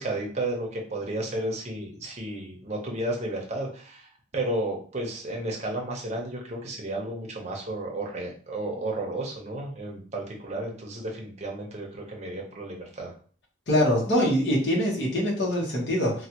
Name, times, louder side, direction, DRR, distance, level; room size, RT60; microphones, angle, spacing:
voice 1, 0.0-13.1, right 1 dB, 35° right, 0 dB, 0.7 m, -33 dB
voice 2, 13.7-16.3, equal, 60° left, -3 dB, 1.0 m, -24 dB
3.2 x 2.3 x 2.9 m, 0.43 s
head